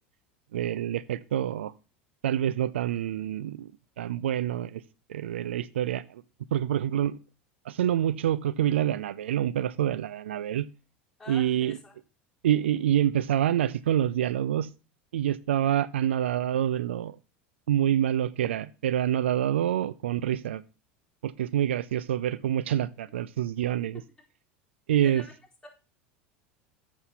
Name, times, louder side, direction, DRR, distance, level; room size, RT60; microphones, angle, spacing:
voice 1, 0.5-1.7 2.2-3.7 4.0-4.8 5.1-6.2 6.5-7.2 7.7-10.7 11.3-11.8 12.4-14.7 15.1-17.2 17.7-20.6 21.2-24.0 24.9-25.2, right 11 dB, 80° right, 18 dB, 0.4 m, -27 dB
voice 2, 11.2-11.9 23.1-23.2 25.0-25.3 25.6-25.7, left 2 dB, 5° left, -3 dB, 4.3 m, -46 dB
8.0 x 6.5 x 5.6 m, 0.33 s
hypercardioid pair, 85°, 6 cm